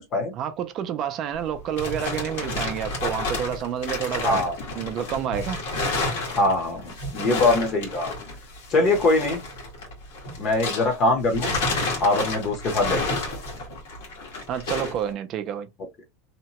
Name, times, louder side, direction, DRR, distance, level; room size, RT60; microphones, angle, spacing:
voice 1, 0.3-4.4 4.8-5.6 14.5-15.7, right 9 dB, 35° right, 0.4 m, -29 dB
sound 1, 1.4-11.0 11.3-15.0, left 2 dB, 80° left, 1.4 m, -30 dB
voice 2, 4.2-4.6 6.4-8.1 8.7-9.4 10.4-11.5 12.0-13.2, left 2 dB, 30° left, 0.8 m, -22 dB
2.8 x 2.1 x 2.9 m
supercardioid pair, 165°, 0 cm